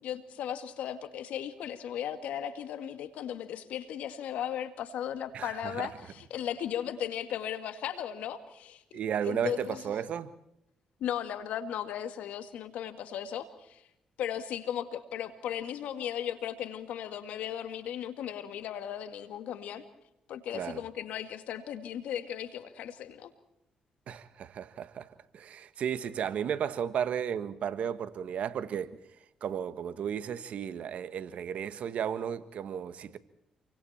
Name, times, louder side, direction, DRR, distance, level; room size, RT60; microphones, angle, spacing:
voice 1, 0.0-8.8 9.2-9.8 11.0-13.8 14.2-19.8 20.3-23.3, left 10 dB, 80° left, 2.2 m, -36 dB
voice 2, 5.3-5.9 8.9-10.3 20.5-20.8 24.1-25.1 25.3-29.0 29.4-33.2, right 8 dB, 70° right, 1.5 m, -34 dB
28.5 x 23.5 x 4.4 m
supercardioid pair, 60°, 2 cm